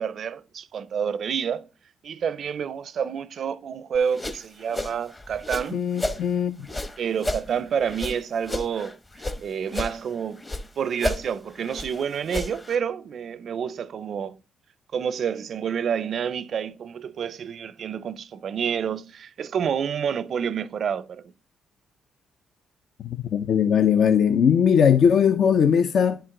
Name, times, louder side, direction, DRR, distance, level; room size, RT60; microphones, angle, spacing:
voice 1, 0.0-1.7 2.0-5.8 7.0-9.0 9.4-10.4 10.8-14.4 14.9-21.2, right 7 dB, 60° right, 0.4 m, -28 dB
sound 1, 3.9-6.2 6.6-9.4 9.7-10.7 10.9-12.8, left 1 dB, 20° left, 0.8 m, -32 dB
voice 2, 5.7-6.6 23.0-26.2, left 7 dB, 65° left, 0.5 m, -19 dB
10.0 x 4.5 x 3.7 m
cardioid pair, 90°, 0 cm